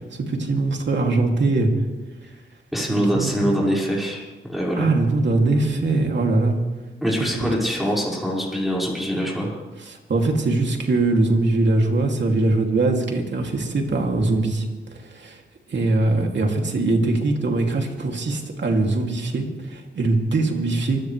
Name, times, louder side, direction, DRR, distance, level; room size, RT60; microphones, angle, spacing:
voice 1, 0.1-1.7 2.9-3.5 4.8-6.6 9.8-14.6 15.0-15.4 15.7-21.0, right 2 dB, 65° right, 1 dB, 2.8 m, -22 dB
voice 2, 2.7-4.9 7.0-9.6, equal, ahead, -5 dB, 5.5 m, -24 dB
25.0 x 16.5 x 3.4 m, 1.2 s
cardioid pair, 80°, 20 cm